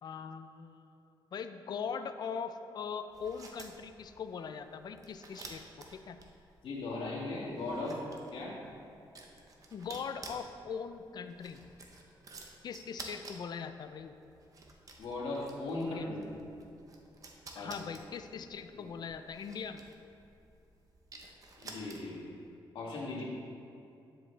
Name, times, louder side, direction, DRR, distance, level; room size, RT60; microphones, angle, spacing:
voice 1, 0.0-1.0 1.3-6.2 9.7-11.6 12.6-14.2 15.8-16.1 17.6-19.8, left 6 dB, 50° left, 9 dB, 0.4 m, -41 dB
sound 1, 3.1-22.3, right 3 dB, 40° right, 0.9 m, -52 dB
voice 2, 6.6-8.0 8.3-8.6 15.0-16.2 17.5-17.7 18.7-18.9 21.6-22.3 22.7-23.2, left 2 dB, 90° left, -5 dB, 2.0 m, -38 dB
9.5 x 7.7 x 3.3 m, 2.6 s
wide cardioid pair, 140°, 9 cm